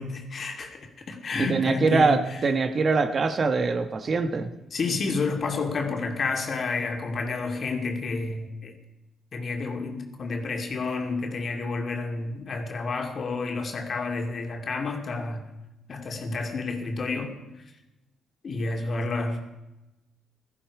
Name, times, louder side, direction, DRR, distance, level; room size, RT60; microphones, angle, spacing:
voice 1, 0.0-2.4 4.7-8.7 9.3-15.5 15.9-17.3 18.4-19.4, left 3 dB, 45° left, 2 dB, 2.6 m, -30 dB
voice 2, 1.4-4.5, right 4 dB, 45° right, 8 dB, 1.2 m, -23 dB
16.5 x 14.0 x 4.9 m, 1.0 s
cardioid pair, 90°, 0 cm